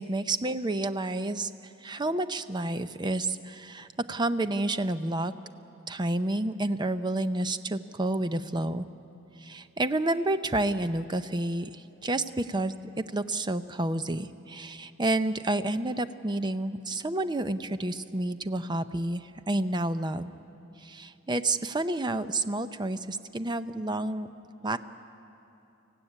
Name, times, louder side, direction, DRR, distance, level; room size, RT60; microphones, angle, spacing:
voice 1, 0.0-1.5 1.8-5.3 5.9-8.9 9.4-12.7 13.1-20.3 20.8-24.3 24.6-24.8, right 2 dB, 20° right, 11 dB, 0.6 m, -29 dB
24.0 x 16.0 x 9.9 m, 3.0 s
head